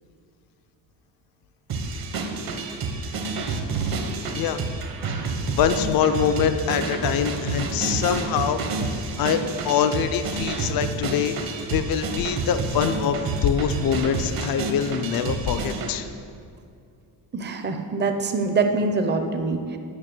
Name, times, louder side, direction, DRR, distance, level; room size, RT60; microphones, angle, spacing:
sound 1, 1.7-15.9, right 3 dB, 50° right, 1.0 m, -29 dB
voice 1, 5.6-8.6 9.2-11.3 11.7-16.1, left 8 dB, 50° left, 9 dB, 0.5 m, -24 dB
voice 2, 17.3-19.8, right 3 dB, 25° right, 6 dB, 0.6 m, -24 dB
9.6 x 5.7 x 7.6 m, 2.3 s
cardioid pair, 175°, 45 cm